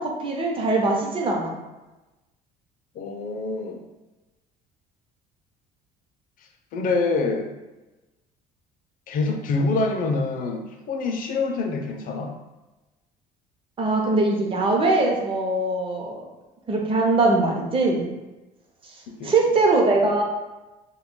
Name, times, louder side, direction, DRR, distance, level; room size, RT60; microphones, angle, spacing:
voice 1, 0.0-1.6 13.8-16.3 16.7-18.1 19.2-20.2, right 2 dB, 30° right, -1 dB, 0.7 m, -21 dB
voice 2, 3.0-3.8 6.7-7.5 9.1-12.3 19.1-19.3, left 3 dB, 55° left, 4 dB, 0.5 m, -26 dB
2.3 x 2.1 x 3.6 m, 1.1 s
supercardioid pair, 95°, 17 cm